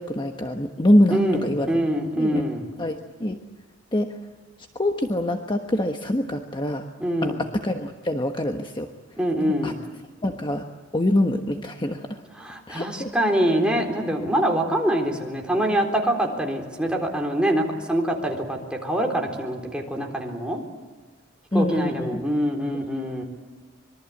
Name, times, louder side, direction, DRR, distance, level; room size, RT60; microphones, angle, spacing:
voice 1, 0.0-1.7 2.2-2.4 2.8-3.4 3.9-4.1 4.7-6.8 7.2-8.9 9.4-9.7 10.2-10.6 10.9-12.2 12.7-13.1 21.5-22.2, left 1 dB, 25° left, 4 dB, 1.3 m, -24 dB
voice 2, 1.1-2.7 7.0-7.4 9.2-9.8 12.4-20.6 21.5-23.2, right 1 dB, 5° right, 1 dB, 3.9 m, -24 dB
25.5 x 23.0 x 8.5 m, 1.3 s
head